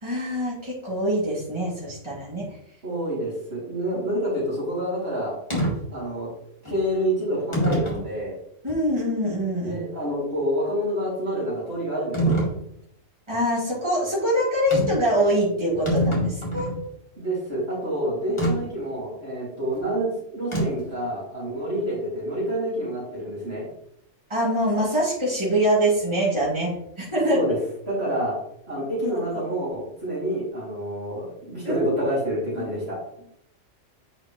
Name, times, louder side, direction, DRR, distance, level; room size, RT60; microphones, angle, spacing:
voice 1, 0.0-2.6 8.6-9.8 13.3-16.7 24.3-27.4 29.1-29.2 31.6-31.9 32.6-32.7, equal, 20° right, -7 dB, 2.8 m, -24 dB
voice 2, 2.8-5.3 5.9-6.3 6.6-8.3 9.6-12.4 17.2-23.7 27.3-27.6 27.9-28.4 28.7-33.0, right 1 dB, 55° right, -7 dB, 3.0 m, -28 dB
sound 1, 5.5-5.7 6.7-6.8 7.5-8.1 8.7-8.8 12.1-12.6 14.7-15.1 15.4-15.5 15.7-16.8 18.4-18.5 20.5-20.9, right 1 dB, 25° left, 2.2 m, -24 dB
8.0 x 4.9 x 3.1 m, 0.74 s
omnidirectional pair, 1.3 m